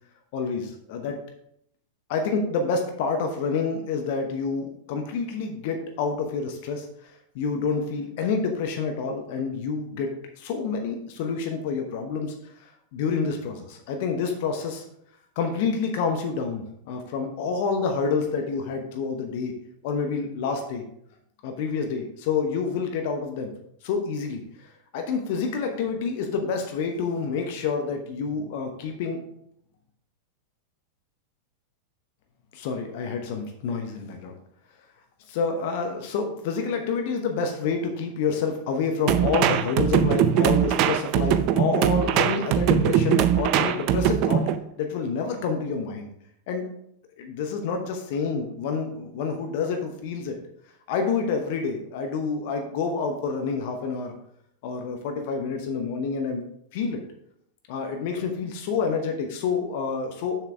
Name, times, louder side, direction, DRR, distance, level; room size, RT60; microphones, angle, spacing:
voice 1, 0.3-1.2 2.1-6.9 7.3-12.3 12.9-14.8 15.4-19.5 19.8-20.9 21.4-23.5 23.8-29.2 32.5-34.3 35.3-44.5 44.8-46.1 46.5-46.7 47.2-50.4 50.9-54.2 54.6-56.4 56.7-57.0 57.7-60.4, left 5 dB, 50° left, 4 dB, 0.9 m, -28 dB
sound 1, 39.1-44.6, right 9 dB, 40° right, 0.5 m, -21 dB
7.1 x 7.0 x 3.4 m, 0.72 s
figure-of-eight pair, 90°, 0 cm